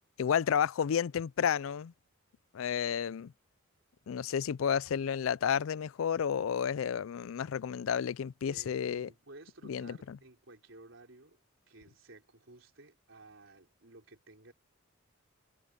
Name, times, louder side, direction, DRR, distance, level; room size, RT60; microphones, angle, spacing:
voice 1, 0.2-1.9 2.5-3.3 4.1-9.1 9.7-10.2, left 8 dB, 90° left, 0.4 m, -31 dB
voice 2, 8.5-11.4 11.7-14.5, right 2 dB, 70° right, 4.7 m, -55 dB
head